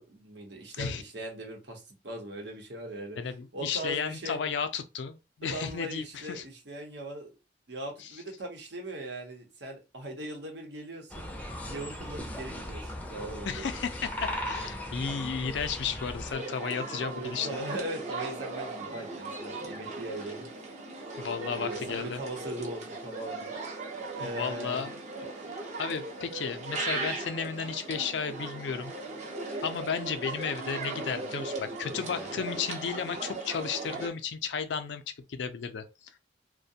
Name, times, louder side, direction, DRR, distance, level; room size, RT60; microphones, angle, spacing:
voice 1, 0.0-3.2 3.5-4.4 5.4-7.3 7.7-11.2 11.7-13.7 16.5-20.6 21.5-23.5 24.2-24.8 31.9-32.4, right 1 dB, 80° right, 0.9 m, -40 dB
voice 2, 3.2-6.4 8.0-8.1 13.5-17.5 21.2-22.2 24.2-25.0 25.8-28.9 29.6-35.0 35.3-35.9, left 6 dB, 90° left, 0.4 m, -33 dB
sound 1, 11.1-16.3, left 1 dB, 10° left, 0.4 m, -37 dB
sound 2, 16.3-34.1, right 3 dB, 40° right, 0.6 m, -38 dB
2.4 x 2.1 x 2.7 m
head